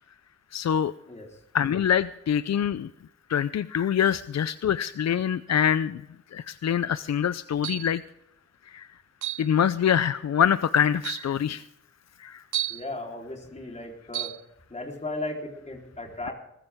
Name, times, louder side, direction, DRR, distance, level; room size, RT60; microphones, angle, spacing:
voice 1, 0.5-0.9 1.5-2.9 3.3-6.0 6.3-8.0 8.7-8.9 9.4-11.6 12.2-12.4, left 8 dB, 60° left, 14 dB, 0.6 m, -25 dB
sound 1, 7.6-8.0 9.2-9.5 10.4-10.5 11.0-11.3 12.5-12.9 14.1-14.4, right 12 dB, 75° right, 0.6 m, -32 dB
voice 2, 12.7-14.4 14.7-16.3, left 2 dB, 25° left, 1 dB, 4.0 m, -36 dB
20.0 x 14.5 x 3.6 m, 0.81 s
wide cardioid pair, 95°, 30 cm